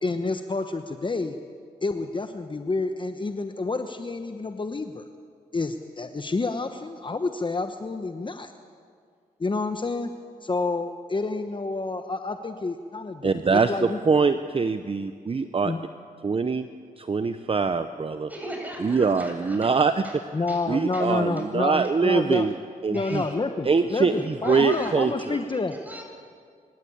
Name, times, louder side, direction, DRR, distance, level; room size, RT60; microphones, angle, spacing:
voice 1, 0.0-1.4 1.8-5.0 5.5-8.5 9.4-10.1 10.4-14.0 15.6-15.8 20.3-22.5 22.9-25.8, left 3 dB, 30° left, 7 dB, 1.1 m, -29 dB
voice 2, 13.2-13.7 14.1-15.7 16.2-16.7 17.0-18.3 18.8-20.0 20.7-22.5 22.8-23.3 23.6-25.4, right 4 dB, 40° right, 10 dB, 0.8 m, -23 dB
voice 3, 18.3-20.2 20.5-20.7 20.9-21.1 21.4-21.5 22.3-22.4 22.9-23.4 24.0-26.0, equal, 10° right, 1 dB, 7.1 m, -41 dB
25.5 x 13.5 x 8.7 m, 2.1 s
cardioid pair, 60°, 15 cm